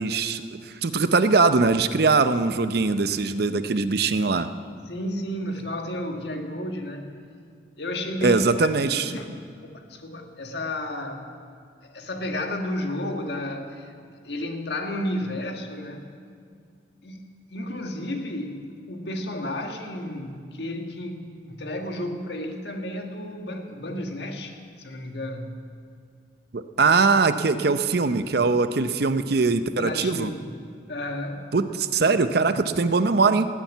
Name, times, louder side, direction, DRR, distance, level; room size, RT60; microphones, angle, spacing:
voice 1, 0.0-4.5 8.2-9.1 26.5-30.3 31.5-33.5, right 4 dB, 55° right, 11 dB, 0.6 m, -21 dB
voice 2, 4.8-7.2 7.8-11.3 11.8-13.9 14.2-16.1 17.0-25.6 29.8-30.6 30.9-31.5, left 1 dB, 60° left, 4 dB, 1.6 m, -32 dB
18.0 x 7.3 x 9.1 m, 2.2 s
head